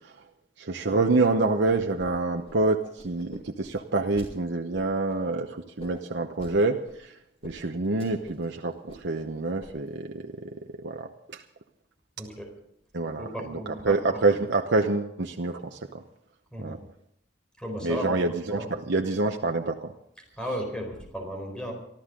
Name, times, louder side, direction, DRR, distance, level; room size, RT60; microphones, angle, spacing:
voice 1, 0.6-7.1 7.4-10.2 10.8-11.4 12.9-16.0 16.6-16.8 17.8-19.9, right 3 dB, 70° right, 3 dB, 0.9 m, -27 dB
sound 1, 1.6-2.1 2.3-4.3 4.7-5.2 5.8-6.5 6.9-7.0 7.4-7.5 7.8-8.5 8.7-9.3 9.6-10.0, equal, 35° left, 5.4 m, -46 dB
voice 2, 12.2-12.5 13.2-14.2 16.5-16.8 17.6-18.2 18.5-18.7 20.4-21.7, equal, 5° left, 2 dB, 4.2 m, -35 dB
24.5 x 14.0 x 3.8 m, 0.75 s
head